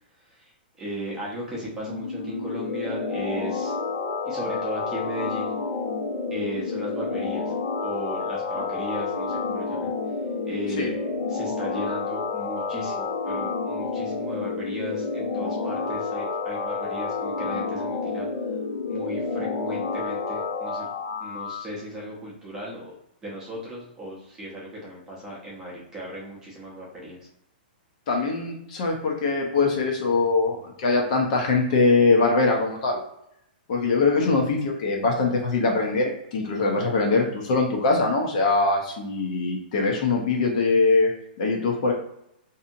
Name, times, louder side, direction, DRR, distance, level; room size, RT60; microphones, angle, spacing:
voice 1, 0.2-0.5 0.8-3.7 4.2-5.5 6.3-7.5 7.8-9.9 10.4-11.0 11.3-18.3 18.9-20.9 21.2-23.0 23.2-27.3, equal, 10° right, -5 dB, 0.8 m, -36 dB
sound 1, 1.7-21.6, left 4 dB, 75° left, 1.1 m, -29 dB
voice 2, 28.1-33.0 33.7-41.1 41.4-41.9, left 3 dB, 45° left, 0 dB, 0.7 m, -22 dB
2.7 x 2.7 x 2.6 m, 0.76 s
hypercardioid pair, 165°, 5 cm